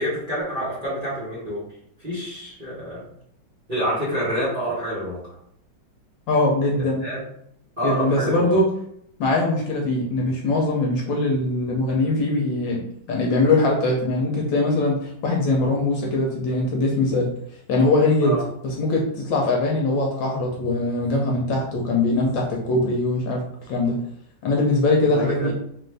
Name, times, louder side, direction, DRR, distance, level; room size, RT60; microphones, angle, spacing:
voice 1, 0.0-1.6 2.0-3.1 3.7-5.2 6.8-7.2 7.8-8.5 18.2-18.4 25.0-25.5, equal, 30° right, -10 dB, 1.0 m, -27 dB
voice 2, 6.3-7.0 7.8-8.7 9.2-12.8 13.1-17.3 17.7-18.4 18.6-23.4 23.7-24.0 24.4-25.5, left 2 dB, 70° left, -1 dB, 1.3 m, -21 dB
3.9 x 2.6 x 3.3 m, 0.70 s
omnidirectional pair, 2.3 m